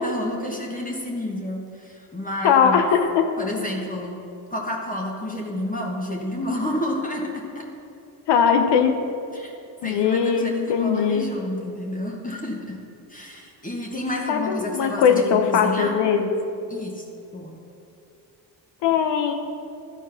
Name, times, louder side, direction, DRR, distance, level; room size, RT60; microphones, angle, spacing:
voice 1, 0.0-2.9 3.4-4.2 4.5-7.7 9.3-9.5 9.8-12.8 13.1-16.0 16.7-17.1 17.3-17.6, left 1 dB, 20° left, -1 dB, 1.4 m, -30 dB
voice 2, 2.4-3.2 8.3-8.9 9.8-11.2 14.3-16.3 18.8-19.3, left 7 dB, 85° left, 6 dB, 0.9 m, -20 dB
11.5 x 4.6 x 5.8 m, 2.6 s
cardioid pair, 75°, 41 cm